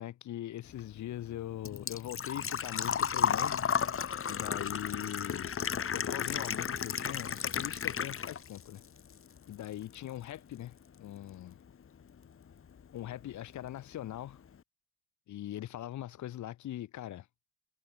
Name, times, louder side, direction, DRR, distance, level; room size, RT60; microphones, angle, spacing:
voice 1, 0.0-3.6 4.2-5.5 5.9-8.8 9.5-11.6 12.9-14.4 15.3-17.3, left 12 dB, 70° left, 1.7 m, -41 dB
Engine / Trickle dribble / Fill (with liquid), 0.7-8.6 9.0-10.0 10.2-10.3 12.3-12.4 12.5-12.9 13.2-13.3 13.6-13.7, left 7 dB, 45° left, 2.3 m, -33 dB
cardioid pair, 90°, 30 cm